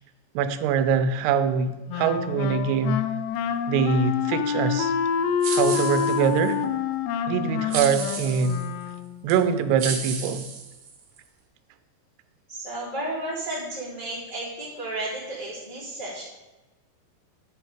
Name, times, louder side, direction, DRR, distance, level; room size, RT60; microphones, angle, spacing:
voice 1, 0.4-3.0 3.7-4.9 5.5-6.6 7.3-8.6 9.2-10.5, right 6 dB, 80° right, 11 dB, 2.6 m, -23 dB
Wind instrument woodwind instrument, 1.9-9.3, left 7 dB, 80° left, 2.6 m, -27 dB
Shaker light, 5.4-6.5 7.7-8.7 9.3-9.4 9.8-11.2, right 5 dB, 65° right, 2.3 m, -33 dB
voice 2, 12.5-16.2, right 1 dB, 15° left, -8 dB, 2.1 m, -33 dB
9.8 x 6.2 x 5.0 m, 1.1 s
omnidirectional pair, 5.1 m